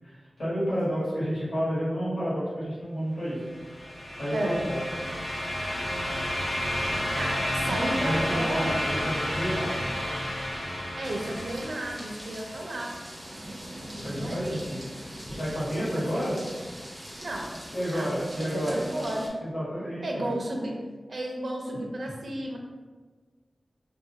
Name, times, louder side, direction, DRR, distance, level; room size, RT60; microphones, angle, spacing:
voice 1, 0.0-3.5 4.2-4.8 7.6-9.8 14.0-14.9 15.3-16.3 17.7-18.8 19.4-20.3, equal, 70° left, -9 dB, 1.2 m, -30 dB
sound 1, 3.5-12.4, left 1 dB, 55° left, 0.5 m, -31 dB
voice 2, 4.3-4.6 7.1-8.8 10.9-13.0 13.9-14.6 16.0-16.3 17.2-17.5 17.9-19.3 20.0-20.8 21.1-22.6, right 1 dB, 70° right, 0 dB, 0.4 m, -33 dB
sound 2, 11.0-19.3, equal, 10° right, 0.5 m, -42 dB
2.4 x 2.2 x 2.7 m, 1.4 s
wide cardioid pair, 80°, 0 cm